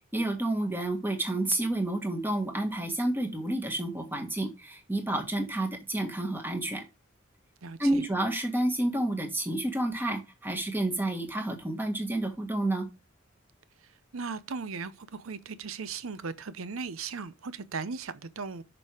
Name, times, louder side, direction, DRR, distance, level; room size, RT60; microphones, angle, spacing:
voice 1, 0.1-6.8 7.8-12.9, right 1 dB, 10° right, 1.6 m, -30 dB
voice 2, 7.6-8.0 13.8-18.6, right 5 dB, 75° right, 0.7 m, -37 dB
6.8 x 5.4 x 4.8 m
head